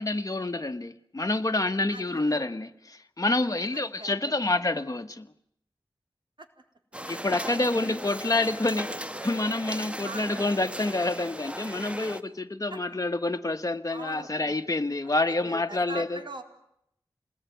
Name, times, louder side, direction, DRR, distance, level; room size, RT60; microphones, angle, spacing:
voice 1, 0.0-5.3 7.1-16.2, left 2 dB, 40° left, 1.4 m, -28 dB
voice 2, 1.9-2.3 3.7-4.3 6.4-6.5 7.1-7.9 8.7-8.9 10.0-10.3 12.7-12.8 13.9-14.3 15.2-16.4, right 2 dB, 65° right, 4.2 m, -43 dB
sound 1, 6.9-12.2, equal, 15° right, 1.4 m, -37 dB
27.5 x 20.5 x 9.4 m
wide cardioid pair, 55°, 9 cm